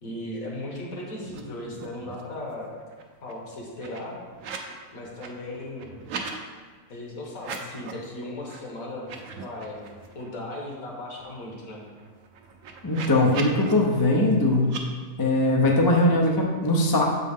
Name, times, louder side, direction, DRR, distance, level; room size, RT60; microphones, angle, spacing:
voice 1, 0.0-2.7 3.2-4.2 4.9-6.0 6.9-9.1 9.3-9.8 10.1-11.8, left 1 dB, 60° left, -2 dB, 1.6 m, -37 dB
sound 1, 1.3-2.3 2.7-4.7 5.0-6.4 7.3-8.1 8.5-8.6 9.0-10.3 10.7-10.8 11.0-13.7 14.6-14.8, right 5 dB, 65° right, 0.9 m, -40 dB
voice 2, 12.8-14.7 15.2-17.0, left 1 dB, 35° left, -1 dB, 0.3 m, -21 dB
7.3 x 4.5 x 3.6 m, 1.5 s
omnidirectional pair, 1.7 m